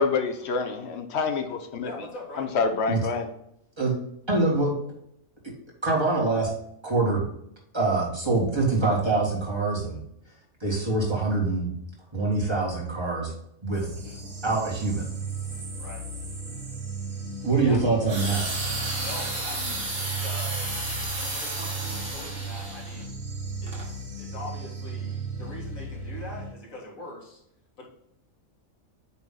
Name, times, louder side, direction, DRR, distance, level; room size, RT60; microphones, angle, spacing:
voice 1, 0.0-1.9 2.4-3.3, left 4 dB, 60° left, 6 dB, 1.0 m, -27 dB
voice 2, 1.8-2.5 14.0-14.2 15.8-16.0 17.6-17.8 19.0-20.7 21.1-23.2 23.6-27.4 27.8-27.9, left 2 dB, 80° left, -3 dB, 2.3 m, -42 dB
voice 3, 4.3-4.8 5.4-5.5 5.8-6.5 6.8-7.2 7.7-10.0 10.6-11.7 12.1-13.3 13.6-13.9 14.4-15.1 17.4-18.5, right 3 dB, 20° right, -3 dB, 1.8 m, -24 dB
sound 1, 13.7-26.5, right 3 dB, 85° right, 2.4 m, -36 dB
sound 2, 18.1-23.0 23.7-23.8, right 2 dB, 45° right, 1.7 m, -32 dB
8.3 x 3.0 x 3.8 m, 0.76 s
omnidirectional pair, 1.4 m